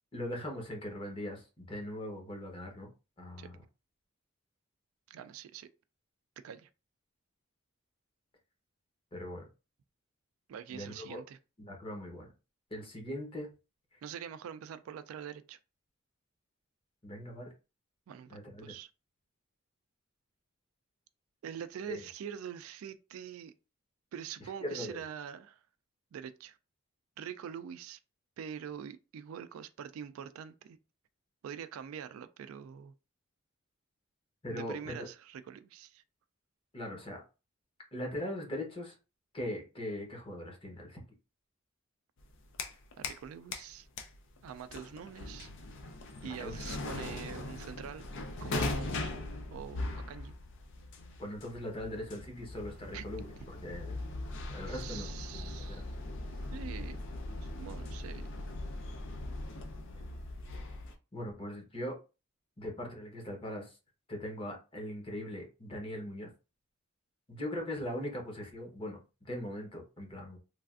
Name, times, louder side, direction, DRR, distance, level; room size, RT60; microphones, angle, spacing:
voice 1, 0.1-2.9 3.2-3.6 9.1-9.5 10.7-11.2 11.6-12.3 12.7-13.5 17.0-17.5 18.3-18.7 21.9-22.0 24.6-25.0 34.4-35.1 36.7-37.2 37.9-38.9 39.3-41.0 46.2-46.6 47.0-47.4 51.2-54.0 54.5-55.9 61.1-61.9 62.6-63.7 64.1-66.3 67.3-70.4, left 1 dB, 25° left, 0.8 m, -40 dB
voice 2, 5.1-5.7 6.4-6.7 10.5-11.4 14.0-15.6 18.1-18.9 21.4-23.5 24.1-25.6 26.1-26.6 27.2-28.0 28.4-30.8 31.4-32.9 34.5-36.0 43.0-43.9 44.4-45.5 46.2-48.1 48.4-49.1 49.5-50.3 52.9-53.0 54.7-55.9 56.5-57.0 57.4-58.3, right 8 dB, 75° right, 0.3 m, -44 dB
sound 1, 42.2-43.3 43.5-61.0, left 2 dB, 60° left, 0.5 m, -40 dB
3.2 x 2.4 x 2.4 m
head